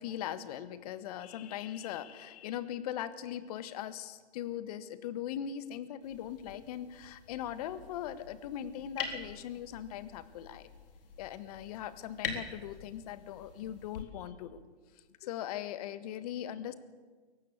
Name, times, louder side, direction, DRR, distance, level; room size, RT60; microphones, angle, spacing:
voice 1, 0.0-10.7 11.2-14.6 15.2-16.7, left 10 dB, 35° left, 13 dB, 1.6 m, -40 dB
sound 1, 6.0-14.0, left 5 dB, 55° left, 4.1 m, -45 dB
23.0 x 18.0 x 8.3 m, 1.4 s
hypercardioid pair, 135°, 32 cm